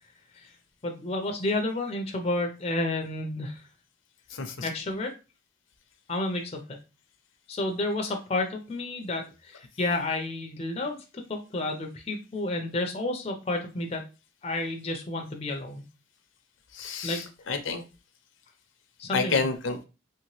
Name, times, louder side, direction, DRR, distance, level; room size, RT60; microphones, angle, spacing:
voice 1, 0.8-3.6 4.6-5.1 6.1-6.6 7.5-11.0 11.3-14.0 14.4-15.8 17.0-17.2 19.0-19.4, left 2 dB, 30° left, 3 dB, 0.5 m, -30 dB
voice 2, 4.3-4.7 16.7-17.8 19.1-19.8, left 4 dB, 80° left, 7 dB, 0.6 m, -29 dB
3.1 x 2.9 x 3.0 m, 0.30 s
head